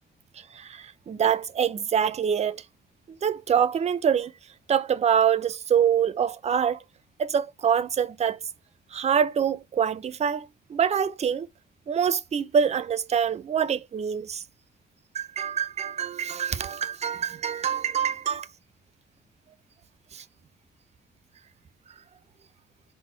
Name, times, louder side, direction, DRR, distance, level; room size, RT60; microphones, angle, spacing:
voice 1, 0.5-2.6 3.1-4.3 4.7-6.8 7.2-8.4 8.9-11.5 11.9-14.4 15.1-18.5 20.1-20.2, right 8 dB, 35° right, 0.4 m, -25 dB
4.1 x 2.0 x 4.3 m
cardioid pair, 90°, 20 cm